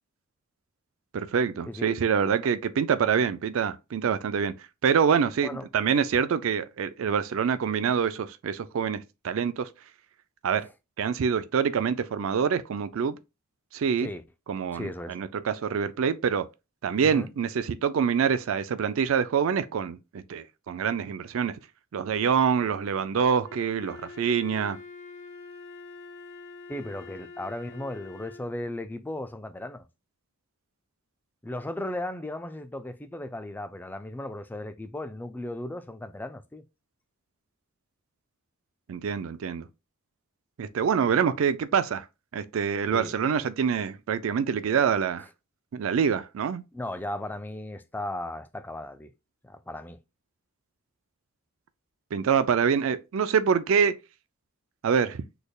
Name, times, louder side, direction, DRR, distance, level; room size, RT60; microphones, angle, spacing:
voice 1, 1.1-4.5 4.8-9.7 10.4-10.7 11.0-13.2 13.7-14.1 14.5-16.5 16.8-21.6 21.9-24.8 38.9-39.7 40.6-42.1 42.3-45.3 45.7-46.6 52.1-54.0 54.8-55.2, right 7 dB, 65° right, 0.4 m, -26 dB
voice 2, 14.7-15.2 17.0-17.3 26.7-29.9 31.4-36.6 42.9-43.1 46.7-49.1 49.4-50.0, left 1 dB, 10° left, 0.3 m, -36 dB
Wind instrument woodwind instrument, 23.4-28.6, left 4 dB, 55° left, 1.5 m, -45 dB
6.2 x 3.4 x 2.3 m
head